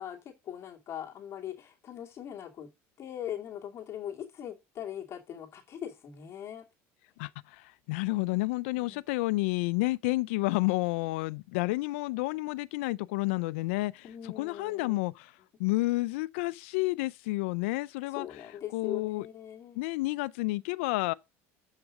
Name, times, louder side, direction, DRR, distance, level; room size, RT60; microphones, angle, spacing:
voice 1, 0.0-2.7 3.0-6.6 8.9-9.0 14.0-15.0 18.1-19.8, left 10 dB, 40° left, 2.5 m, -41 dB
voice 2, 7.2-15.3 15.6-18.5 18.7-19.3 19.8-21.1, left 21 dB, 85° left, 0.4 m, -30 dB
7.5 x 5.9 x 4.9 m
supercardioid pair, 115°, 7 cm